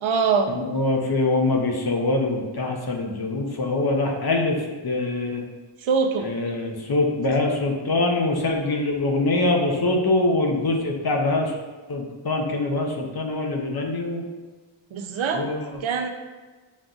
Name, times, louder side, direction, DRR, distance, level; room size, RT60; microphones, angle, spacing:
voice 1, 0.0-0.6 5.8-6.3 14.9-15.5 15.8-16.1, right 5 dB, 75° right, 6 dB, 0.5 m, -23 dB
voice 2, 0.6-4.6 4.8-5.4 6.2-11.5 11.9-14.2 15.3-15.7, left 2 dB, 50° left, 1 dB, 0.7 m, -24 dB
7.2 x 2.5 x 2.4 m, 1.3 s
wide cardioid pair, 90°, 48 cm